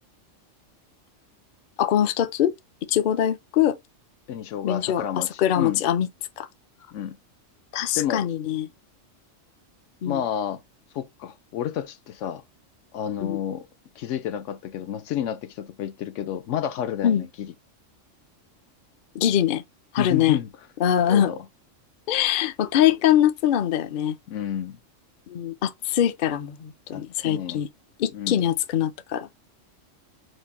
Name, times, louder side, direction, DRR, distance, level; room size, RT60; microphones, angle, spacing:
voice 1, 1.8-2.5 2.9-3.8 4.6-6.1 6.4-6.5 7.7-8.7 10.0-10.2 13.2-13.4 17.0-17.3 19.1-19.6 19.9-20.4 20.8-21.3 22.1-24.2 25.3-27.7 28.0-29.3, left 10 dB, 55° left, 0.6 m, -23 dB
voice 2, 4.3-5.8 6.9-7.2 7.9-8.2 10.0-10.6 10.9-12.4 12.9-13.7 14.0-17.5 20.0-20.5 21.1-21.4 24.3-24.8 26.9-27.6 28.1-28.4, left 10 dB, 75° left, 0.9 m, -30 dB
5.1 x 2.1 x 4.1 m
omnidirectional pair, 1.3 m